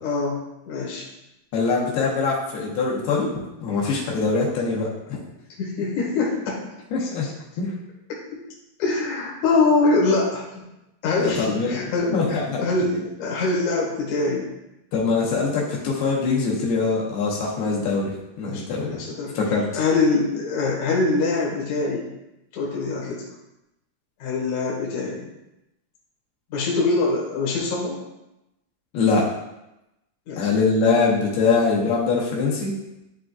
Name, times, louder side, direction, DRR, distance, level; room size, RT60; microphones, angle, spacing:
voice 1, 0.0-1.1 5.6-6.7 7.0-7.1 8.3-8.4 8.8-10.6 11.0-14.5 18.4-19.4 19.7-22.1 22.5-23.2 24.2-25.3 26.5-28.0 30.3-30.5, left 3 dB, 60° left, -4 dB, 2.4 m, -24 dB
voice 2, 1.5-5.2 6.9-7.3 7.6-7.7 11.2-11.8 12.1-12.6 14.9-18.1 18.4-18.9 19.3-19.7 28.9-29.2 30.4-32.7, left 4 dB, 85° left, -4 dB, 3.1 m, -23 dB
11.0 x 3.8 x 2.4 m, 0.92 s
omnidirectional pair, 4.4 m